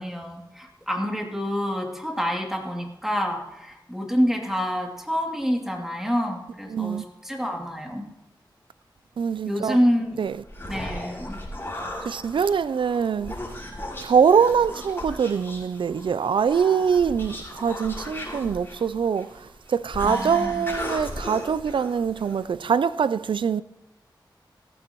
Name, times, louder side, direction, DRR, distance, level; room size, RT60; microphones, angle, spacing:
voice 1, 0.0-8.1 9.4-10.2 10.7-11.4 20.0-20.7, equal, 5° right, 2.5 m, -27 dB
voice 2, 6.7-7.0 9.2-9.8 10.2-10.3 12.1-13.3 14.0-23.6, right 6 dB, 85° right, 0.4 m, -23 dB
Human voice, 10.3-22.5, left 1 dB, 25° left, 6.1 m, -37 dB
16.5 x 15.0 x 3.0 m
wide cardioid pair, 70°, 8 cm